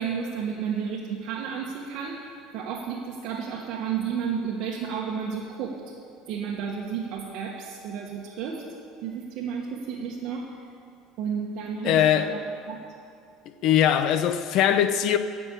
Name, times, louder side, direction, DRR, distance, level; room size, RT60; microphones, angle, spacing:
voice 1, 0.0-2.3 2.5-5.8 6.3-8.6 9.0-10.5 11.2-12.4 12.7-12.8, right 7 dB, 50° right, 1.3 m, -32 dB
voice 2, 11.8-12.3 13.6-15.2, left 10 dB, 50° left, 0.7 m, -21 dB
16.0 x 6.1 x 8.3 m
cardioid pair, 160°, 0 cm